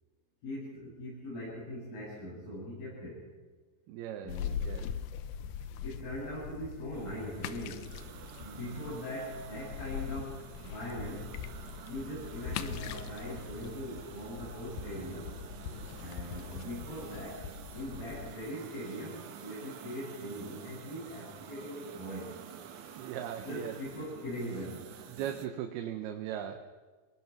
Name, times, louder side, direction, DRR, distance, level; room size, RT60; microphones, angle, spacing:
voice 1, 0.4-3.2 4.2-4.5 5.8-8.0 8.4-11.3 11.9-15.3 16.0-17.4 17.7-22.3 23.4-24.8, equal, 65° left, -9 dB, 9.7 m, -41 dB
voice 2, 3.9-4.4 4.7-4.9 23.0-23.8 25.1-26.7, right 10 dB, 85° right, 5 dB, 3.0 m, -38 dB
sound 1, 4.3-18.3, left 8 dB, 85° left, 2.8 m, -42 dB
sound 2, 6.9-25.5, right 8 dB, 60° right, 2.5 m, -49 dB
28.0 x 19.0 x 6.0 m, 1.4 s
omnidirectional pair, 4.4 m